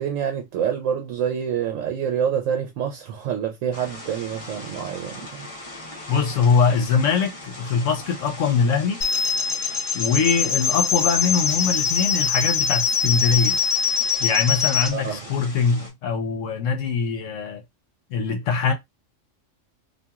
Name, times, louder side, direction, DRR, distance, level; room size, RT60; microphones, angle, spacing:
voice 1, 0.0-5.5 14.9-15.2, right 8 dB, 80° right, 1.0 m, -27 dB
sound 1, 3.7-15.9, left 1 dB, 30° left, 0.9 m, -40 dB
voice 2, 6.1-9.0 9.9-13.6 14.2-17.6 18.1-18.7, left 5 dB, 75° left, 1.0 m, -22 dB
sound 2, 9.0-14.9, left 6 dB, 55° left, 0.4 m, -23 dB
2.9 x 2.6 x 2.3 m
omnidirectional pair, 1.3 m